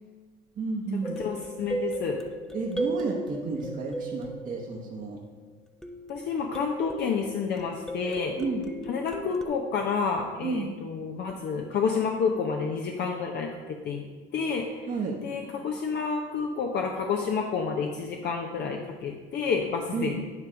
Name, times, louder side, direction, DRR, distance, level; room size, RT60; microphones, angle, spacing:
voice 1, 0.6-1.2 2.5-5.2 8.4-8.6 10.4-10.7 14.9-15.2 19.9-20.1, right 3 dB, 40° right, -2 dB, 1.1 m, -31 dB
sound 1, 1.0-5.3 5.8-9.4, right 2 dB, 5° left, 0.7 m, -36 dB
voice 2, 1.2-2.2 6.1-8.4 8.9-14.1 14.3-14.9 15.2-20.2, left 5 dB, 55° left, 2 dB, 0.8 m, -29 dB
9.7 x 3.5 x 6.3 m, 1.4 s
supercardioid pair, 95°, 21 cm